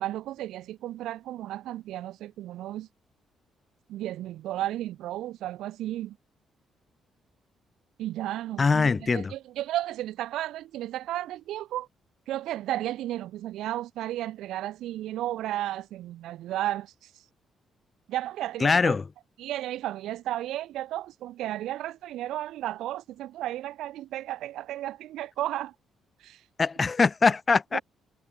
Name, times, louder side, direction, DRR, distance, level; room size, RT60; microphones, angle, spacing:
voice 1, 0.0-2.9 3.9-6.2 8.0-11.9 12.3-17.1 18.1-19.0 19.4-25.7 26.2-26.4 27.7-27.8, right 14 dB, 85° right, 2.6 m, -33 dB
voice 2, 8.6-9.3 18.6-19.1 26.6-27.8, left 4 dB, 30° left, 0.5 m, -22 dB
cardioid pair, 90°, 0 cm